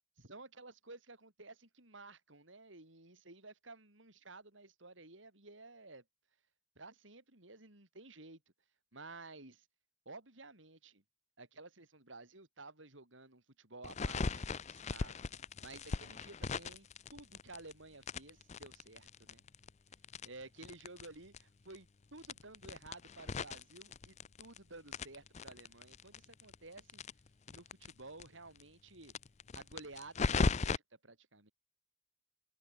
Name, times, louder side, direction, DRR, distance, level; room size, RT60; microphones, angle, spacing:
voice 1, 0.2-6.0 6.8-8.4 8.9-9.7 10.1-11.0 11.4-15.3 15.6-19.4 20.2-27.0 27.5-29.1 29.5-31.5, right 3 dB, 80° right, 5.4 m, -54 dB
sound 1, 13.8-17.7 18.0-21.1 21.3-21.4 21.7-21.8 22.2-24.6 24.9-27.9 28.2-28.3 28.6-28.7 29.0-30.8, left 4 dB, 35° left, 0.5 m, -37 dB
open air
head